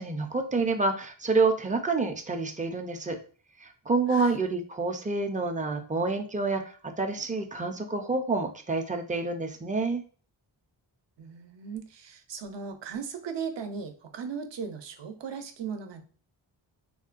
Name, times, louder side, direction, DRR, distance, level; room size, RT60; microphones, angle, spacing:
voice 1, 0.0-3.2 3.6-10.0, right 3 dB, 20° right, 5 dB, 0.4 m, -28 dB
voice 2, 4.1-4.4 11.2-16.0, right 6 dB, 60° right, 7 dB, 0.6 m, -37 dB
3.6 x 2.1 x 2.4 m, 0.40 s
wide cardioid pair, 85°, 49 cm